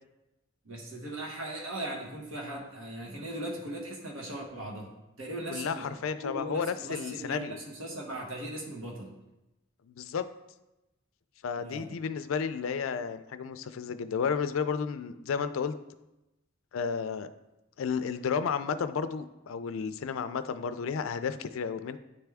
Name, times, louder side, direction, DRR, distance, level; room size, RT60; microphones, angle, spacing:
voice 1, 0.6-4.9 5.2-5.9 6.2-9.1 11.6-12.0, right 1 dB, 80° right, -1 dB, 1.2 m, -38 dB
voice 2, 5.5-7.6 9.9-10.2 11.4-15.8 16.7-17.3 17.8-22.0, left 6 dB, 85° left, 11 dB, 0.4 m, -32 dB
9.7 x 3.4 x 3.4 m, 0.96 s
head